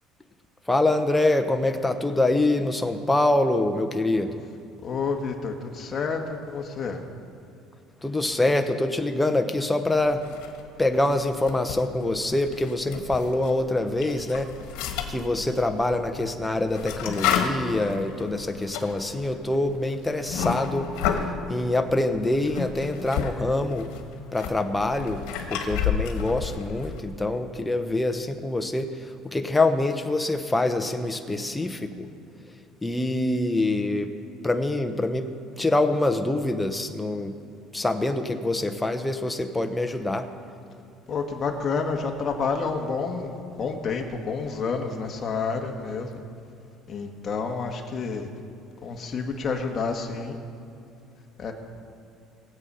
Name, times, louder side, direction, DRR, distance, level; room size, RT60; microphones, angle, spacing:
voice 1, 0.7-4.4 8.0-10.3 10.8-14.5 15.1-21.0 21.5-23.9 24.3-25.2 25.5-32.1 32.8-34.1 34.4-37.3 37.7-40.3, left 2 dB, 10° left, 7 dB, 1.0 m, -25 dB
voice 2, 4.8-6.2 6.5-7.0 41.1-46.2 46.9-48.3 48.8-50.4 51.4-51.5, left 5 dB, 35° left, 2 dB, 1.8 m, -29 dB
sound 1, 10.2-10.9 11.3-13.6 13.9-21.4 22.1-23.3 23.6-27.0, left 8 dB, 80° left, 1.6 m, -31 dB
21.5 x 8.2 x 5.7 m, 2.6 s
cardioid pair, 125°, 0 cm